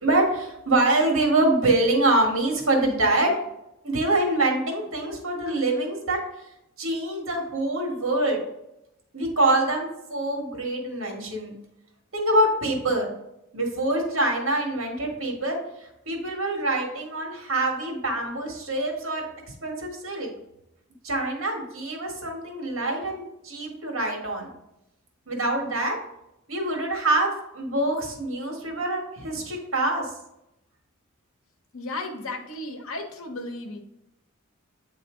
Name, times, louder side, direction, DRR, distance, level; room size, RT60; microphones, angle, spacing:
voice 1, 0.0-3.4 3.8-6.2 6.8-8.4 9.1-11.5 12.1-13.1 13.5-15.6 16.0-19.3 19.6-20.3 21.0-24.5 25.3-26.0 26.5-30.1, right 2 dB, 75° right, 1 dB, 1.5 m, -25 dB
voice 2, 31.7-33.8, left 2 dB, 80° left, 5 dB, 1.0 m, -34 dB
8.6 x 3.1 x 3.7 m, 0.86 s
head